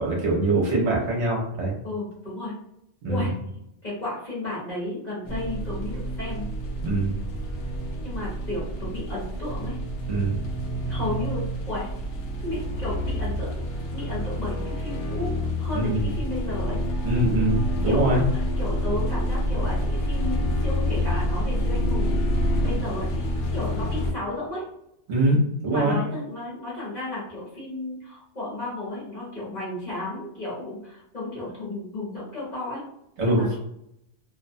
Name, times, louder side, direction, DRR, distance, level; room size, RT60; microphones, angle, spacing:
voice 1, 0.0-1.7 3.0-3.3 6.8-7.2 10.1-10.4 15.7-16.1 17.0-18.2 25.1-26.0 33.2-33.5, right 2 dB, 65° right, -3 dB, 1.0 m, -23 dB
voice 2, 1.8-2.5 3.1-3.3 3.8-6.5 8.0-9.8 10.9-11.9 12.4-16.8 17.8-22.3 22.6-23.3 23.5-24.6 25.7-32.8 33.2-33.6, left 2 dB, 40° left, -8 dB, 1.1 m, -33 dB
sound 1, 5.3-24.1, equal, 70° left, 0.9 m, -28 dB
2.6 x 2.1 x 2.6 m, 0.78 s
omnidirectional pair, 1.3 m